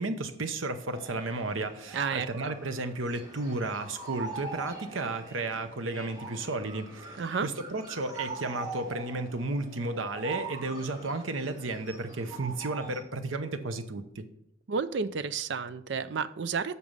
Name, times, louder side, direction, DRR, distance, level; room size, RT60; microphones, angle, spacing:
voice 1, 0.0-14.2, right 2 dB, 85° right, 9 dB, 0.9 m, -33 dB
sound 1, 0.9-13.0, right 4 dB, 20° right, 2.6 m, -43 dB
voice 2, 1.9-2.5 7.2-7.5 14.7-16.7, right 5 dB, 60° right, 13 dB, 0.5 m, -31 dB
8.4 x 6.2 x 5.4 m, 0.75 s
head